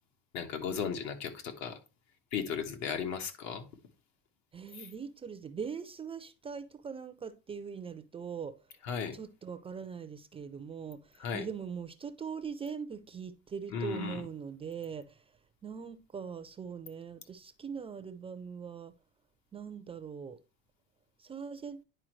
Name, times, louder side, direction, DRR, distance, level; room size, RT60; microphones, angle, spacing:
voice 1, 0.3-1.8 2.3-3.7 4.7-4.9 8.8-9.2 11.2-11.5 13.7-14.3, left 7 dB, 70° left, 1.3 m, -36 dB
voice 2, 4.5-8.6 9.1-15.2 15.6-18.9 19.5-20.4 21.2-21.8, right 6 dB, 20° right, 0.4 m, -41 dB
10.0 x 4.4 x 3.1 m
cardioid pair, 155°, 29 cm